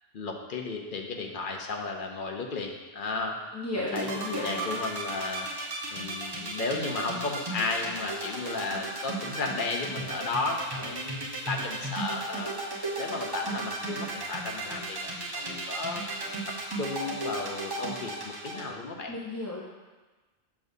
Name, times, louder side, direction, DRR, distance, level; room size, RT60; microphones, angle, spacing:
voice 1, 0.1-3.4 3.7-5.5 5.9-12.5 13.0-16.1 16.5-19.1, left 3 dB, 55° left, 2 dB, 0.8 m, -34 dB
voice 2, 3.5-4.6 19.1-19.6, left 2 dB, 20° left, -5 dB, 0.4 m, -33 dB
sound 1, 3.9-18.6, right 2 dB, 25° right, 1.0 m, -34 dB
sound 2, 6.8-7.1 7.6-7.9 8.4-8.7 9.2-9.4 10.0-10.2 10.7-11.0 11.5-11.8 12.3-12.5 13.1-13.3 13.9-14.1 14.6-14.9 15.4-15.7 16.2-16.4 17.0-17.2 17.8-18.0 18.5-18.8, right 3 dB, 70° right, 1.1 m, -46 dB
7.2 x 6.3 x 2.6 m, 1.3 s
omnidirectional pair, 1.1 m